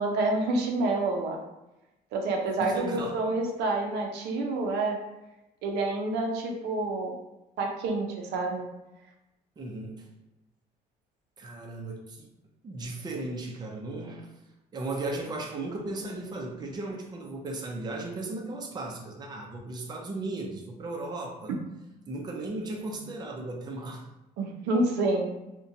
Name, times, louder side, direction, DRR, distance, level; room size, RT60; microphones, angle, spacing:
voice 1, 0.0-1.4 2.1-5.0 5.6-7.2 7.6-8.7 24.4-25.3, right 2 dB, 85° right, 2 dB, 0.5 m, -28 dB
voice 2, 2.6-3.2 9.6-10.1 11.4-12.3 12.6-14.3 14.7-21.5 22.1-24.1, right 2 dB, 25° right, 1 dB, 0.4 m, -36 dB
2.6 x 2.1 x 2.6 m, 0.98 s
cardioid pair, 110°, 17 cm